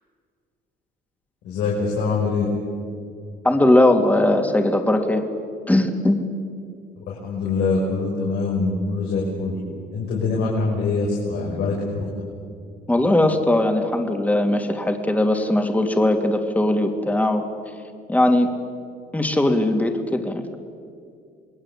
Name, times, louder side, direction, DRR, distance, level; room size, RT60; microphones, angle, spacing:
voice 1, 1.4-2.5 7.0-9.6 9.9-12.0, left 3 dB, 85° left, -3 dB, 5.8 m, -24 dB
voice 2, 3.4-5.2 5.7-6.2 12.9-17.4 18.1-18.5 19.1-20.5, left 1 dB, 10° left, 5 dB, 2.7 m, -19 dB
27.5 x 21.0 x 8.6 m, 2.3 s
cardioid pair, 110°, 17 cm